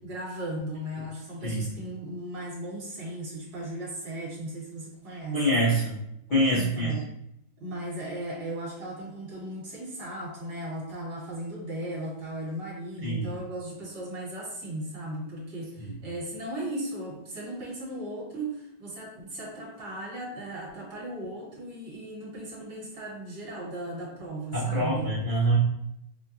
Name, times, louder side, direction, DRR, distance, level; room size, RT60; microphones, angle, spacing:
voice 1, 0.0-5.6 6.5-7.1 7.6-25.1, right 1 dB, 55° right, -4 dB, 1.8 m, -37 dB
voice 2, 1.4-1.7 5.1-5.9 6.3-6.9 13.0-13.3 15.8-15.9 24.5-25.6, right 1 dB, 65° left, -7 dB, 0.4 m, -25 dB
5.7 x 2.2 x 2.8 m, 0.78 s
omnidirectional pair, 2.2 m